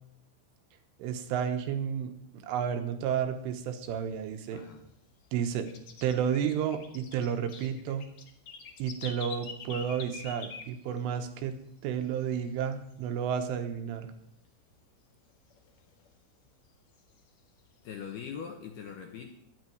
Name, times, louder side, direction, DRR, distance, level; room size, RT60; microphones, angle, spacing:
voice 1, 1.0-4.6 5.3-5.7 6.0-8.0 8.8-11.6 11.8-14.1, right 8 dB, 75° right, 7 dB, 3.6 m, -31 dB
sound 1, 3.4-4.9 5.2-11.3 11.6-11.7 12.0-12.5 12.8-14.0 14.3-14.4 14.8-14.9 15.3-16.5 16.9-18.3, left 5 dB, 90° left, 1.5 m, -46 dB
voice 2, 4.5-4.9 17.8-19.3, left 7 dB, 70° left, 3 dB, 2.5 m, -41 dB
12.5 x 9.5 x 9.3 m, 0.76 s
omnidirectional pair, 5.9 m